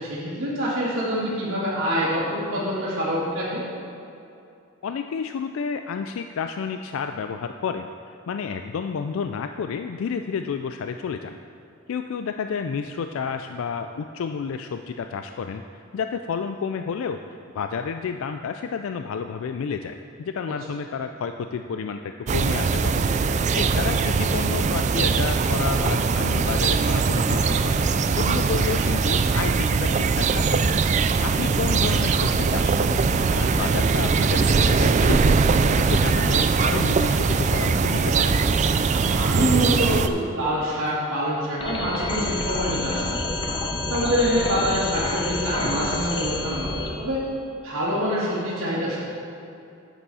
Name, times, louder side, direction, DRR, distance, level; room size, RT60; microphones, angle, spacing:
voice 1, 0.0-3.6 20.5-20.6 31.2-31.5 39.1-43.2 43.9-47.2 47.6-49.0, equal, 85° right, -12 dB, 2.2 m, -25 dB
voice 2, 4.8-7.9 8.3-11.4 11.9-17.2 17.5-23.0 23.5-30.7 31.2-33.0 33.3-35.4 35.8-38.4, left 6 dB, 75° left, 7 dB, 0.3 m, -30 dB
sound 1, 22.3-40.1, right 4 dB, 35° right, 0.3 m, -21 dB
sound 2, 41.6-46.9, left 2 dB, 25° left, 0.9 m, -28 dB
10.0 x 8.1 x 4.2 m, 2.7 s
head